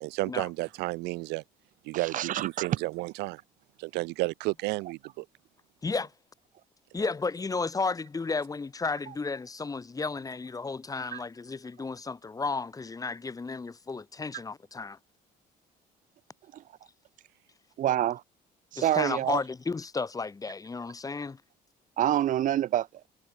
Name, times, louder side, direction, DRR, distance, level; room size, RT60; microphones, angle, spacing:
voice 1, 0.0-1.4 1.9-3.4 3.8-5.3, right 23 dB, 90° right, 0.4 m, -32 dB
voice 2, 1.9-2.8 11.1-11.2 16.5-16.6 17.8-18.2 18.7-19.4 22.0-22.9, right 12 dB, 50° right, 0.6 m, -27 dB
voice 3, 6.9-15.0 18.8-21.4, left 4 dB, 20° left, 1.6 m, -33 dB
cardioid pair, 110°, 17 cm